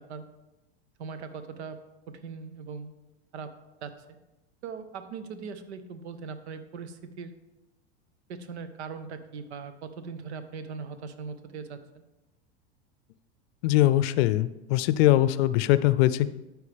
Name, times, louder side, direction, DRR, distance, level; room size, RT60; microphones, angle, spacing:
voice 1, 1.0-1.8 2.1-2.9 3.3-3.5 3.8-4.2 4.6-7.3 8.3-12.0, right 5 dB, 80° right, 10 dB, 0.8 m, -40 dB
voice 2, 13.6-16.3, left 14 dB, 65° left, 15 dB, 0.5 m, -22 dB
12.5 x 4.7 x 3.4 m, 1.0 s
hypercardioid pair, 95°, 33 cm